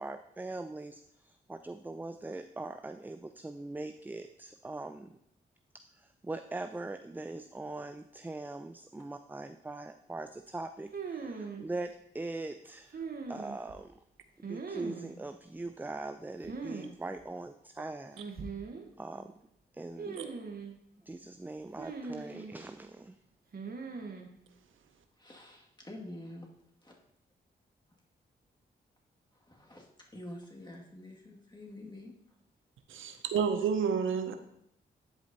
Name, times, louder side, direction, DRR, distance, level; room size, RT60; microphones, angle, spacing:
voice 1, 0.0-5.2 6.0-14.0 14.4-18.2 19.0-19.3 19.7-20.3 21.1-23.2, right 2 dB, 10° right, 0.4 m, -41 dB
sound 1, 10.9-11.6 12.9-13.8 14.4-15.1 16.4-16.9 17.2-17.3 18.1-18.8 20.0-20.7 21.8-22.5 23.5-24.3, right 5 dB, 45° right, 1.1 m, -40 dB
voice 2, 25.2-26.5 26.8-27.0 29.3-32.1, left 1 dB, 20° left, 2.1 m, -47 dB
voice 3, 32.9-34.4, right 6 dB, 70° right, 0.6 m, -30 dB
10.5 x 5.1 x 2.8 m
supercardioid pair, 40°, 21 cm